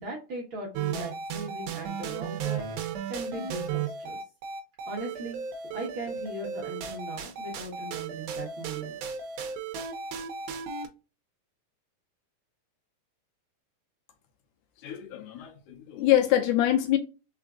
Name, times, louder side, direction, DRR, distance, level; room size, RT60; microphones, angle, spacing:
voice 1, 0.0-4.2 4.8-5.4 5.7-8.9, right 2 dB, 50° right, 1.6 m, -38 dB
sound 1, 0.7-10.9, right 6 dB, 75° right, 2.2 m, -35 dB
voice 2, 14.8-17.0, left 12 dB, 75° left, 2.2 m, -25 dB
4.8 x 4.5 x 2.4 m
omnidirectional pair, 3.8 m